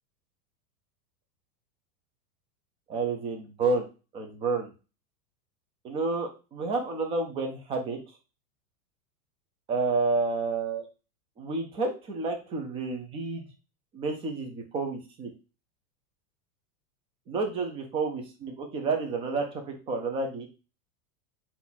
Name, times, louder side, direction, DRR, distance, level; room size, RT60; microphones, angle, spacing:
voice 1, 2.9-3.9 4.1-4.7 5.8-8.0 9.7-10.9 11.4-13.4 13.9-15.3 17.3-18.1 18.5-20.5, right 3 dB, 15° right, 3 dB, 0.3 m, -30 dB
4.2 x 2.4 x 3.9 m, 0.31 s
supercardioid pair, 130°, 47 cm